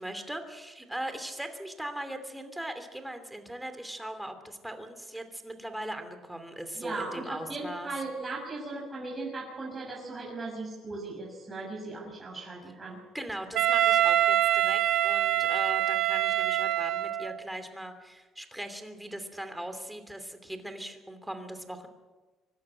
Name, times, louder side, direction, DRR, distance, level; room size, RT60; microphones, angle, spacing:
voice 1, 0.0-7.9 13.1-21.9, right 1 dB, 5° right, 8 dB, 2.8 m, -39 dB
voice 2, 6.8-13.0, right 3 dB, 20° right, -3 dB, 6.7 m, -37 dB
Wind instrument woodwind instrument, 13.5-17.4, right 12 dB, 70° right, 1.1 m, -25 dB
25.5 x 12.0 x 9.9 m, 1.3 s
cardioid pair, 125°, 0 cm